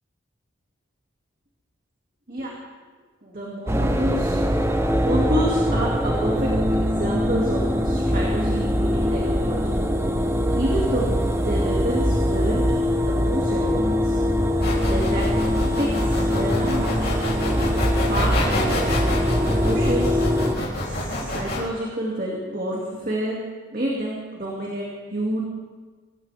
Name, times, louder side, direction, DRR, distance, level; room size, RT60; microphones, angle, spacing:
voice 1, 3.2-4.4 5.0-9.8 10.5-12.8 13.0-14.2 14.8-15.3 15.8-17.2 18.1-18.8 19.4-20.2 20.6-23.4 23.7-25.4, right 1 dB, 45° right, -3 dB, 2.4 m, -28 dB
sound 1, 3.7-20.6, equal, 15° right, 0.7 m, -22 dB
sound 2, 14.6-21.6, left 1 dB, 50° left, 3.4 m, -28 dB
25.0 x 14.0 x 3.5 m, 1.4 s
head